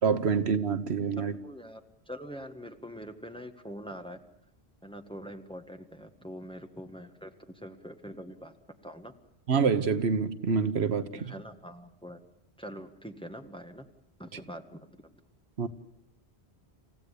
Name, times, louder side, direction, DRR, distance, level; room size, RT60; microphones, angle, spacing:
voice 1, 0.0-1.3 9.5-11.3 15.6-15.7, right 6 dB, 75° right, 1.4 m, -26 dB
voice 2, 1.2-1.8 2.1-4.2 4.8-7.3 7.6-8.5 8.8-9.1 11.1-12.2 12.6-13.9 14.2-14.8, equal, 5° left, 1.6 m, -44 dB
28.5 x 16.0 x 8.5 m
omnidirectional pair, 1.1 m